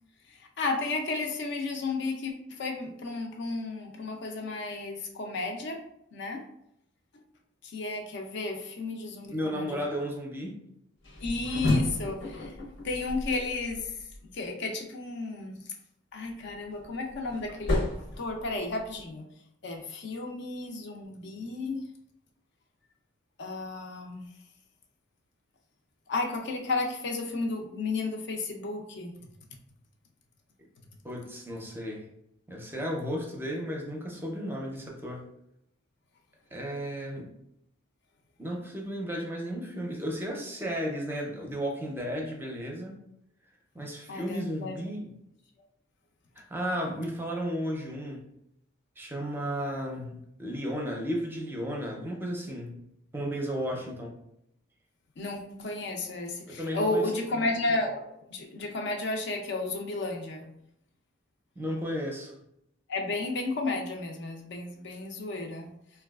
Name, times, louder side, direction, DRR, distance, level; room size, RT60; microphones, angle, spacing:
voice 1, 0.3-5.8 6.1-6.4 7.6-9.9 11.2-12.5 12.8-13.9 14.3-15.6 16.1-17.8 18.2-19.3 19.6-21.8 23.4-24.2 26.1-29.1 44.1-44.7 55.2-58.0 58.3-60.4 62.9-65.7, left 3 dB, 60° left, 2 dB, 0.5 m, -33 dB
voice 2, 9.3-10.6 31.0-32.1 32.5-35.3 36.5-37.3 38.4-42.9 43.7-45.1 46.4-48.2 49.0-52.8 53.1-54.1 56.5-57.1 61.6-62.3, equal, 10° right, 0 dB, 0.5 m, -34 dB
sound 1, 11.0-14.2 16.4-19.0, left 2 dB, 85° left, 0.9 m, -32 dB
3.9 x 2.3 x 2.3 m, 0.78 s
head